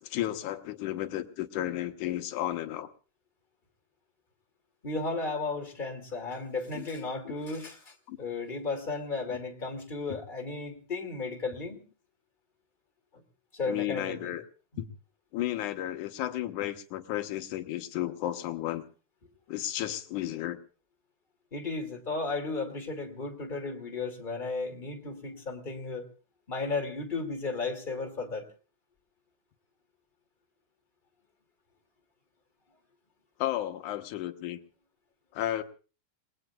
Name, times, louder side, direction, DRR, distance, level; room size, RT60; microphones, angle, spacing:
voice 1, 0.0-2.9 6.7-6.9 7.3-7.4 8.1-8.2 9.3-9.4 13.7-14.4 14.8-14.9 15.3-18.9 19.5-20.6 33.4-34.6 35.3-35.6, left 13 dB, 80° left, 8 dB, 2.5 m, -33 dB
voice 2, 4.8-11.8 13.1-13.2 13.5-14.3 21.5-26.1 26.5-28.5, left 3 dB, 15° left, 3 dB, 2.1 m, -34 dB
29.0 x 20.0 x 2.4 m, 0.36 s
omnidirectional pair, 3.6 m